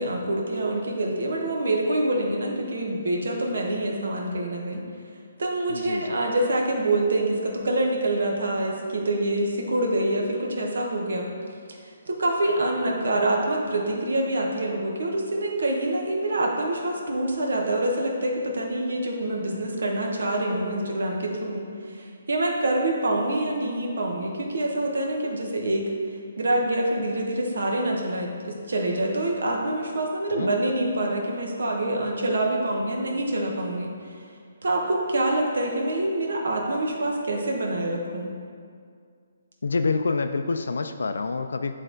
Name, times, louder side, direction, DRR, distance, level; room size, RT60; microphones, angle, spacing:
voice 1, 0.0-4.8 5.4-11.3 11.7-11.8 12.1-25.9 26.4-34.1 34.6-38.3, right 1 dB, 70° right, 0 dB, 1.1 m, -26 dB
voice 2, 5.7-6.2 30.4-30.5 39.6-41.7, left 4 dB, 85° left, 7 dB, 0.3 m, -27 dB
9.0 x 3.3 x 3.8 m, 2.2 s
hypercardioid pair, 170°, 0 cm